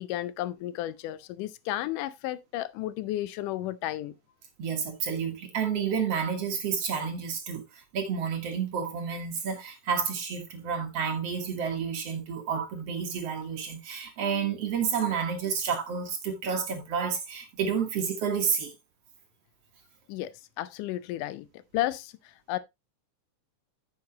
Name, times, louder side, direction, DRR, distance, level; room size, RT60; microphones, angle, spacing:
voice 1, 0.0-4.1 20.1-21.5 21.7-22.6, left 14 dB, 80° left, 2.1 m, -33 dB
voice 2, 4.6-18.7, right 6 dB, 55° right, 2.1 m, -30 dB
9.4 x 6.8 x 2.8 m
omnidirectional pair, 3.7 m